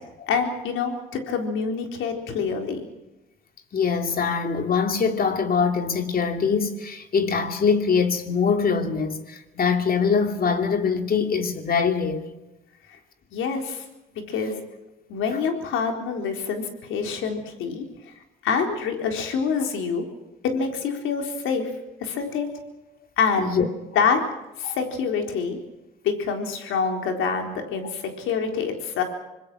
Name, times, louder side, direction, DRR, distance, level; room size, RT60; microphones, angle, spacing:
voice 1, 0.3-2.9 12.9-13.0 13.3-13.8 14.3-14.6 15.1-17.8 18.4-20.0 20.4-21.7 22.0-22.5 23.2-23.5 24.0-24.2 24.6-25.6 26.0-29.0, left 5 dB, 85° left, 4.0 m, -26 dB
voice 2, 3.7-12.3 23.4-23.7 24.6-24.8, left 5 dB, 50° left, 2.8 m, -23 dB
26.0 x 20.5 x 6.2 m
cardioid pair, 90°, 20 cm